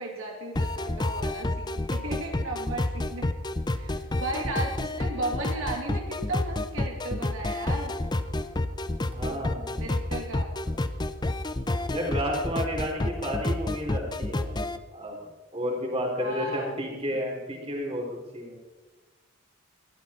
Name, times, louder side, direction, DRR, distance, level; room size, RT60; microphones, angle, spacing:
voice 1, 0.0-3.3 3.7-7.9 9.2-9.5 9.7-10.5 12.8-13.2 16.2-16.8 17.1-17.2, right 2 dB, 65° right, 0 dB, 2.6 m, -35 dB
sound 1, 0.6-14.8, left 1 dB, 20° left, 0.6 m, -29 dB
voice 2, 9.1-9.9 11.9-15.2 15.5-18.0 18.3-18.6, equal, 25° right, 0 dB, 3.7 m, -32 dB
20.5 x 14.0 x 4.4 m, 1.2 s
head